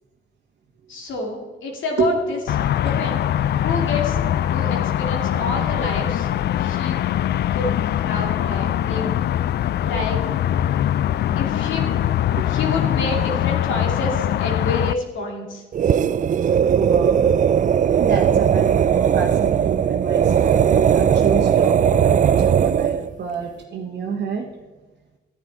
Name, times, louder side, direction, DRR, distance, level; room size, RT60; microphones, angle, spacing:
voice 1, 0.9-3.2 3.6-4.2 4.5-6.3 6.6-7.0 7.5-7.7 8.0-9.2 9.8-10.2 11.4-11.9 12.3-15.6, left 3 dB, 75° left, 0 dB, 2.6 m, -28 dB
sound 1, 2.5-14.9, left 11 dB, 55° left, 0.4 m, -22 dB
sound 2, 15.7-23.1, right 8 dB, 40° right, 0.4 m, -18 dB
voice 2, 16.7-17.2 18.0-24.5, right 6 dB, 55° right, -1 dB, 1.4 m, -28 dB
12.5 x 9.7 x 4.1 m, 1.2 s
cardioid pair, 90°, 20 cm